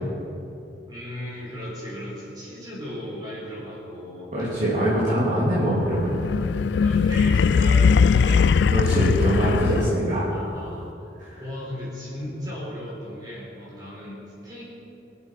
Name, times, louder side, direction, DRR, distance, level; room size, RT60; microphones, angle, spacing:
voice 1, 0.9-4.3 6.8-8.5 10.3-10.9 11.4-14.7, left 1 dB, 25° right, -6 dB, 4.5 m, -36 dB
voice 2, 4.3-6.2 8.7-10.2 11.2-11.4, right 1 dB, 45° right, -9 dB, 3.4 m, -23 dB
sound 1, 5.9-10.2, left 5 dB, 80° left, 0.3 m, -20 dB
24.0 x 8.3 x 5.9 m, 2.9 s
head